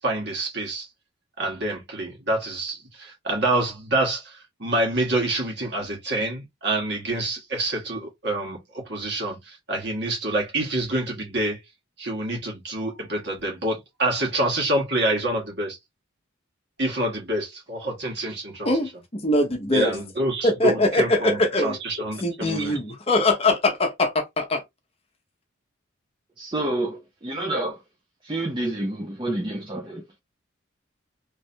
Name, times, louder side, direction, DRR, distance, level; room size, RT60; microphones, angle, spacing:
voice 1, 0.0-0.9 1.4-11.6 12.0-15.8 16.8-18.7 19.7-22.8, right 1 dB, 55° right, 1.7 m, -27 dB
voice 2, 18.6-20.0 20.4-21.8 22.2-24.6, left 2 dB, 30° left, 0.8 m, -22 dB
voice 3, 26.4-27.8 28.2-30.2, right 1 dB, 25° right, 0.6 m, -29 dB
3.3 x 3.0 x 2.7 m
head